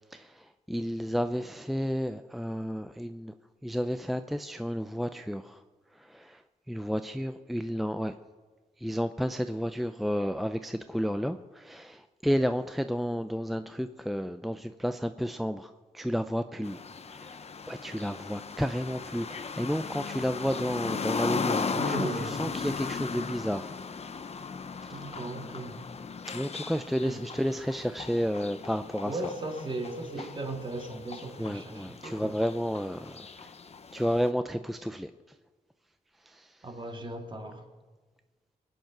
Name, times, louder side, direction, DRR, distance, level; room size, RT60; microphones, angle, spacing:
voice 1, 0.7-3.3 3.6-5.6 6.1-6.4 6.7-8.1 8.8-16.8 17.2-17.3 17.7-23.7 26.3-29.2 31.4-33.5 33.9-35.1 36.3-36.5, equal, ahead, 9 dB, 0.5 m, -31 dB
sound 1, 16.6-34.3, left 5 dB, 45° left, 0.9 m, -37 dB
voice 2, 21.8-22.4 24.9-25.8 27.0-27.2 29.0-32.3 36.6-37.6, right 2 dB, 35° right, 4 dB, 2.2 m, -37 dB
21.5 x 9.2 x 6.0 m, 1.3 s
cardioid pair, 95°, 14 cm